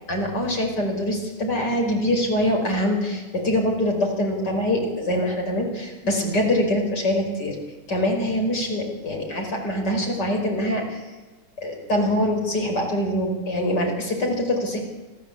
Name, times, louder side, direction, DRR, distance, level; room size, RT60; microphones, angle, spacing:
voice 1, 0.1-7.6 7.9-11.0 11.6-14.8, left 1 dB, 50° left, 2 dB, 5.7 m, -24 dB
26.5 x 16.0 x 8.6 m, 1.2 s
omnidirectional pair, 2.3 m